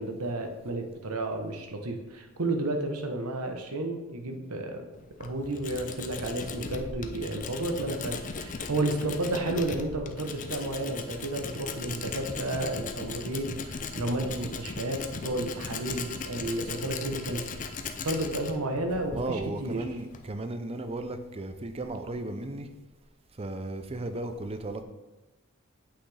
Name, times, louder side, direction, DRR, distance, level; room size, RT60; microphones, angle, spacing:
voice 1, 0.0-4.9 5.2-17.4 18.0-19.8, right 2 dB, 80° right, 1.0 m, -32 dB
Tools, 4.9-20.3, left 4 dB, 35° left, 0.5 m, -38 dB
voice 2, 19.1-22.7 23.3-24.8, right 2 dB, 25° right, 0.5 m, -35 dB
8.6 x 5.8 x 3.4 m
head